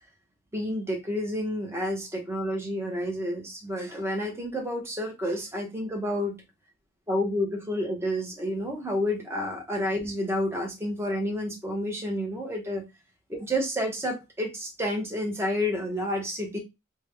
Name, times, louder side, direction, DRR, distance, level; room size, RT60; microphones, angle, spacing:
voice 1, 0.5-6.3 7.1-12.8 13.3-16.6, equal, 15° right, 1.0 m, -30 dB
3.4 x 2.2 x 3.4 m
head